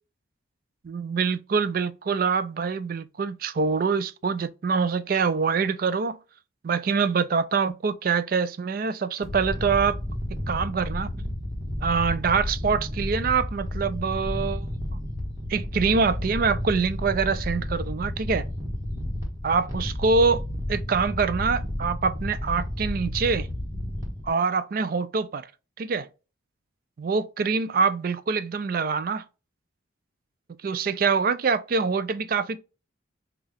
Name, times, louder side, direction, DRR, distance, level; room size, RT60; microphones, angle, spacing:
voice 1, 0.8-6.2 6.6-10.0 10.3-11.1 11.8-14.7 15.5-18.4 19.4-20.4 20.7-23.5 24.2-25.5 25.8-26.1 27.0-29.2 30.6-32.6, right 5 dB, 45° right, 0.3 m, -25 dB
sound 1, 9.2-24.3, left 1 dB, 20° right, 1.1 m, -31 dB
5.4 x 2.3 x 3.3 m
head